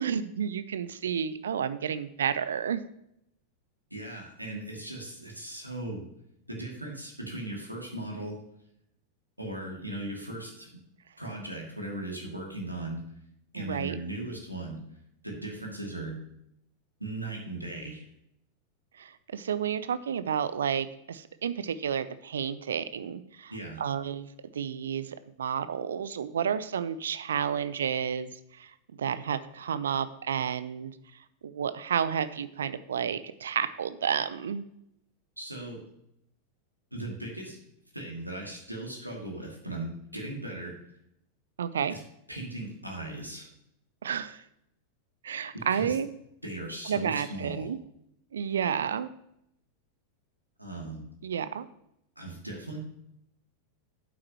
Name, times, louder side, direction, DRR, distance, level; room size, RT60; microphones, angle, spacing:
voice 1, 0.0-2.8 13.5-14.0 19.0-23.5 23.8-28.7 29.0-30.9 31.4-34.7 41.6-42.0 44.0-44.4 45.2-46.1 46.9-47.8 48.3-49.1 51.2-51.7, right 8 dB, 65° right, 14 dB, 0.6 m, -31 dB
voice 2, 3.9-6.1 6.5-8.4 9.4-10.8 11.2-13.0 13.5-14.8 15.2-16.1 17.0-18.0 23.5-23.8 35.4-35.8 36.9-37.6 37.9-40.8 41.9-42.0 42.3-43.5 45.5-45.9 46.4-47.7 50.6-51.1 52.2-52.8, right 1 dB, 85° right, -1 dB, 2.5 m, -38 dB
11.0 x 8.5 x 3.0 m, 0.77 s
figure-of-eight pair, 90°, 0 cm